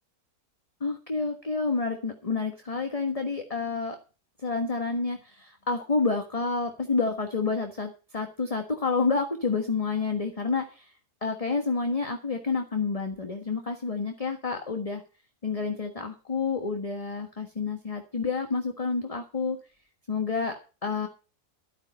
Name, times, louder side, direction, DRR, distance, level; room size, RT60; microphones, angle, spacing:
voice 1, 0.8-4.0 4.4-10.9 11.2-15.0 15.4-19.6 20.1-20.5 20.8-21.1, left 4 dB, 25° left, 4 dB, 1.4 m, -29 dB
12.5 x 9.2 x 5.4 m, 0.35 s
omnidirectional pair, 1.6 m